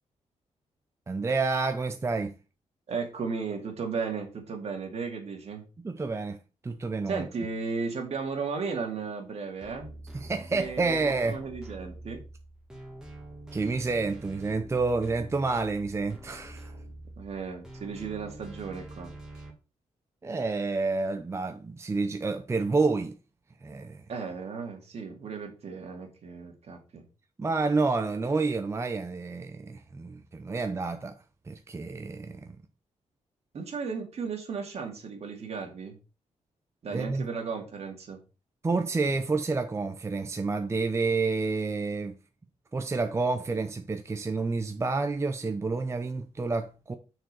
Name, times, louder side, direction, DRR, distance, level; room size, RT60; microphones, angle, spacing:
voice 1, 1.1-2.4 5.8-6.4 6.6-7.3 10.1-11.4 13.5-16.7 20.2-23.2 23.6-24.0 27.4-31.2 31.5-32.6 36.9-37.3 38.6-42.2 42.7-46.9, right 3 dB, 20° right, 0.6 m, -29 dB
voice 2, 2.9-5.7 7.1-9.9 10.5-12.2 17.2-19.1 24.1-27.0 33.5-36.0 36.8-38.2, right 5 dB, 60° right, 2.2 m, -35 dB
sound 1, 9.6-19.5, right 1 dB, 5° right, 1.8 m, -46 dB
6.5 x 4.6 x 4.8 m
cardioid pair, 110°, 12 cm